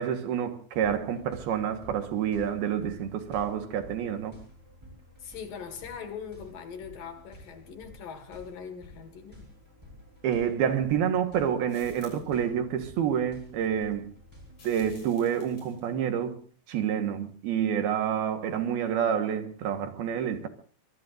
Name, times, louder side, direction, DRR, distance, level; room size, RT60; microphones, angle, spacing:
voice 1, 0.0-4.4 10.2-14.1 14.6-16.4 16.7-20.5, right 8 dB, 65° right, 3.1 m, -28 dB
sound 1, 0.7-15.1, equal, 5° right, 7.6 m, -52 dB
voice 2, 5.2-9.5, left 7 dB, 55° left, 3.3 m, -41 dB
sound 2, 11.7-12.4 14.5-15.9, left 3 dB, 40° left, 7.9 m, -54 dB
24.0 x 23.0 x 2.6 m
omnidirectional pair, 5.1 m